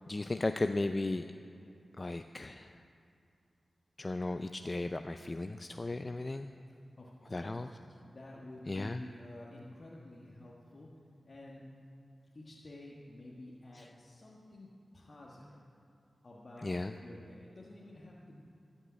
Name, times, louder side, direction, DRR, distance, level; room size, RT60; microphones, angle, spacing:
voice 1, 0.1-1.2 2.0-2.8 4.0-6.5 7.3-7.7 8.7-9.0 13.8-13.9 16.6-16.9, left 2 dB, 40° left, 8 dB, 0.4 m, -35 dB
voice 2, 7.0-7.6 8.0-10.9 11.2-11.7 12.3-15.6 16.2-16.7 17.0-18.4, left 1 dB, 55° left, -5 dB, 1.5 m, -50 dB
13.5 x 5.4 x 8.7 m, 2.5 s
cardioid pair, 40°, 0 cm